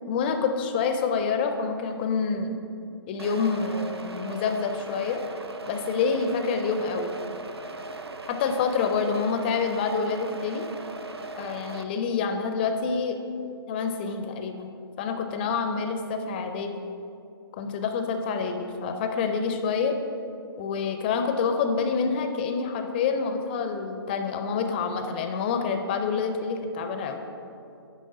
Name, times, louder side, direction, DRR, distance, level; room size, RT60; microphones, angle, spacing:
voice 1, 0.1-2.6 3.1-5.2 5.7-7.1 8.3-10.7 11.4-13.2 13.7-16.7 17.6-20.0 20.6-27.2, left 5 dB, 25° left, 6 dB, 0.4 m, -27 dB
sound 1, 3.2-11.8, right 2 dB, 80° right, 0.6 m, -38 dB
9.5 x 3.2 x 6.4 m, 2.6 s
figure-of-eight pair, 130°, 13 cm